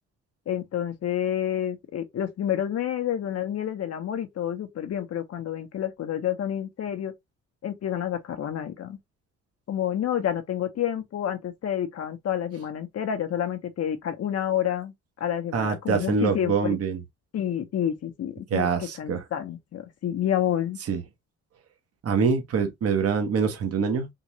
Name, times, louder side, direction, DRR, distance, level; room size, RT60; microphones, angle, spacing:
voice 1, 0.5-7.1 7.6-9.0 9.7-16.8 17.3-20.8, left 10 dB, 55° left, 0.8 m, -29 dB
voice 2, 15.5-17.0 18.5-19.2 20.9-21.0 22.0-24.1, right 5 dB, 50° right, 1.0 m, -25 dB
3.8 x 2.5 x 3.0 m
cardioid pair, 90°, 30 cm